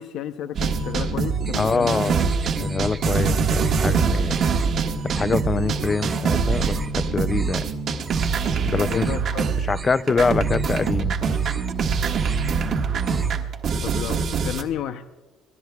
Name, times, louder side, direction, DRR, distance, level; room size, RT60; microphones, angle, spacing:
voice 1, 0.0-2.1 8.8-9.5 13.8-15.0, left 10 dB, 60° left, 0.6 m, -32 dB
sound 1, 0.5-9.8 10.1-14.6, right 5 dB, 40° right, 1.4 m, -24 dB
sound 2, 1.5-3.1 3.4-3.9 4.3-4.7 5.0-5.4 5.8-6.2 6.5-6.9 7.2-7.7 8.0-8.4 8.7-9.3 9.6-10.1 10.4-10.9 11.3-11.8 12.1-12.6 12.9-13.5, right 3 dB, 20° right, 0.9 m, -39 dB
voice 2, 1.6-2.3 2.6-4.5 5.1-6.8 7.1-7.6 8.6-9.1 9.6-11.4, left 4 dB, 20° left, 0.3 m, -24 dB
29.5 x 12.5 x 2.3 m
cardioid pair, 165°, 0 cm